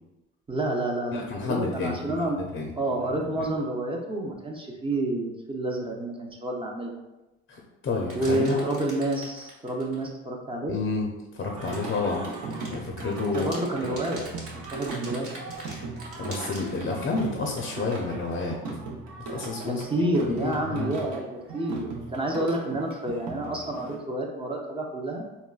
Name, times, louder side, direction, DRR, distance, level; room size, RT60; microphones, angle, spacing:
voice 1, 0.5-2.4 2.8-6.9 8.1-10.8 13.3-14.3 14.7-15.3 19.7-25.3, right 1 dB, 20° right, -1 dB, 0.5 m, -29 dB
voice 2, 1.1-2.0 2.4-2.7 7.5-8.6 10.7-11.1 11.3-12.3 12.7-13.5 16.2-18.6 19.3-19.8 20.4-20.9, left 3 dB, 40° left, 0 dB, 0.5 m, -29 dB
sound 1, 8.1-10.1 11.5-16.9, right 1 dB, 50° right, 1.1 m, -44 dB
Singing, 11.6-24.0, right 3 dB, 75° right, 0.8 m, -38 dB
3.7 x 2.2 x 2.3 m, 0.99 s
supercardioid pair, 75°, 30 cm